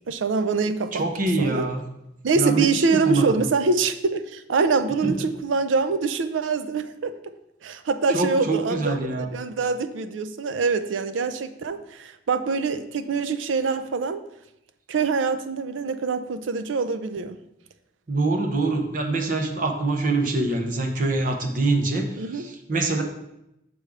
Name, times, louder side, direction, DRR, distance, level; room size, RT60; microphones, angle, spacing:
voice 1, 0.1-1.0 1.4-1.7 2.2-7.1 7.6-14.2 14.9-17.4 22.2-22.4, right 4 dB, 85° right, 11 dB, 0.5 m, -24 dB
voice 2, 0.9-1.8 2.4-3.4 5.0-5.1 8.1-9.3 18.1-23.0, right 2 dB, 45° right, 4 dB, 0.7 m, -24 dB
6.6 x 3.5 x 4.8 m, 0.85 s
head